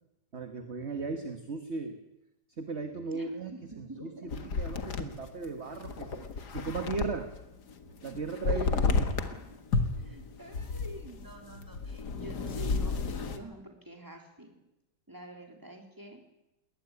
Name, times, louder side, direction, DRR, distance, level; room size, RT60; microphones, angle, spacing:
voice 1, 0.3-2.0 2.6-3.5 3.8-6.2 6.5-7.3 8.0-9.1, right 4 dB, 40° right, 7 dB, 1.7 m, -37 dB
voice 2, 3.1-4.5 5.4-6.5 8.5-9.6 10.0-14.6 15.1-16.3, equal, 10° right, 3 dB, 3.7 m, -48 dB
sound 1, 4.3-7.4 7.7-9.4 9.7-13.4, left 4 dB, 65° left, 2.2 m, -32 dB
20.0 x 19.5 x 9.8 m, 0.91 s
omnidirectional pair, 1.9 m